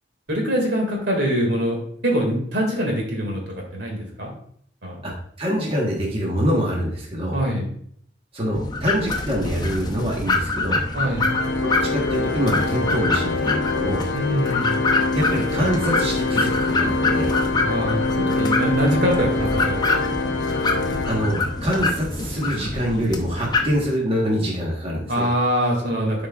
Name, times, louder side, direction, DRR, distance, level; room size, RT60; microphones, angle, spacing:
voice 1, 0.3-4.3 4.8-5.0 7.3-7.7 10.9-11.3 14.1-14.8 17.6-20.3 25.1-26.3, equal, 70° right, 0 dB, 2.2 m, -24 dB
voice 2, 5.4-7.4 8.3-10.8 11.6-14.0 15.1-17.3 21.1-25.3, equal, 30° right, -2 dB, 1.3 m, -25 dB
sound 1, 8.5-23.7, left 3 dB, 20° left, 0.8 m, -26 dB
Organ, 11.2-21.8, left 3 dB, 65° left, 0.6 m, -25 dB
11.5 x 5.1 x 2.4 m, 0.64 s
head